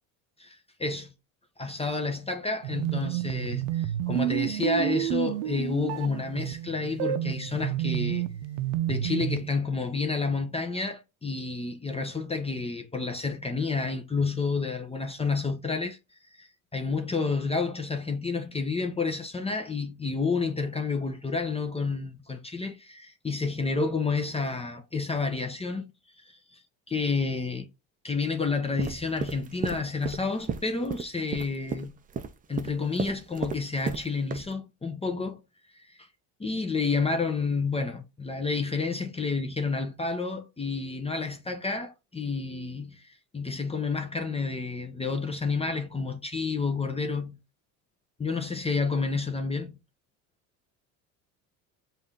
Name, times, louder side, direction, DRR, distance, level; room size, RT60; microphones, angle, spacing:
voice 1, 0.4-1.1 1.6-8.2 8.9-16.0 16.4-16.5 16.7-25.9 26.2-27.7 28.0-32.0 32.5-35.4 35.9-36.0 36.4-43.1 43.3-47.4 48.2-49.8, left 4 dB, 15° left, 0.7 m, -30 dB
sound 1, 2.6-9.5, right 13 dB, 75° right, 0.6 m, -30 dB
sound 2, 28.8-34.1 34.3-34.4, right 6 dB, 20° right, 0.4 m, -33 dB
5.3 x 2.7 x 3.3 m
supercardioid pair, 85°, 42 cm